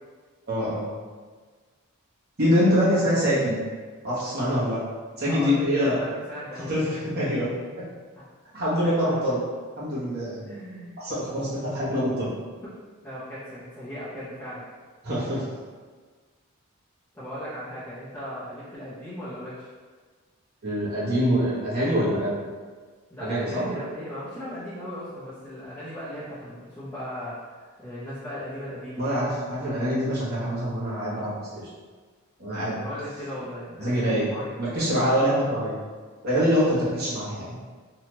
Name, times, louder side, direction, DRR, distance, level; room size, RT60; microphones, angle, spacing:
voice 1, 0.5-0.9 2.4-3.6 4.0-4.8 5.2-6.0 6.7-7.5 8.5-9.4 9.8-10.4 11.0-12.3 15.0-15.4 20.6-22.3 23.2-23.7 29.0-31.3 32.4-32.8 33.8-35.8 36.2-37.6, equal, 45° right, -9 dB, 1.1 m, -24 dB
voice 2, 5.2-6.8 8.2-8.3 8.7-9.2 10.4-11.0 13.0-14.6 17.1-19.7 23.1-29.1 32.8-34.6, equal, 10° left, -13 dB, 0.7 m, -37 dB
2.8 x 2.3 x 3.0 m, 1.5 s
head